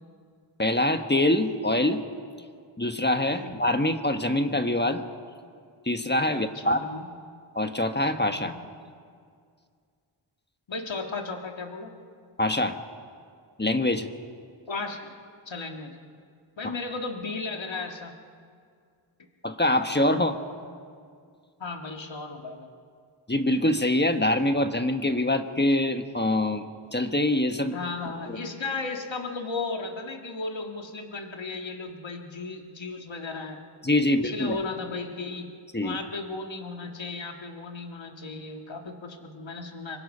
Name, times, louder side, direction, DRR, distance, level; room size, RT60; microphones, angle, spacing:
voice 1, 0.6-2.0 2.8-5.0 5.8-6.8 7.5-8.5 12.4-12.8 13.6-14.1 19.4-20.4 23.3-26.6 26.9-27.8 28.3-28.4 33.8-34.6 35.7-36.0, left 1 dB, 20° left, 7 dB, 1.3 m, -24 dB
voice 2, 6.3-7.1 8.4-8.6 10.7-11.9 14.7-15.1 15.5-16.0 16.6-18.1 21.6-22.7 27.7-33.6 34.1-35.5 35.8-40.0, left 3 dB, 65° left, 3 dB, 1.9 m, -35 dB
25.0 x 24.0 x 5.5 m, 2.2 s
wide cardioid pair, 50°, 49 cm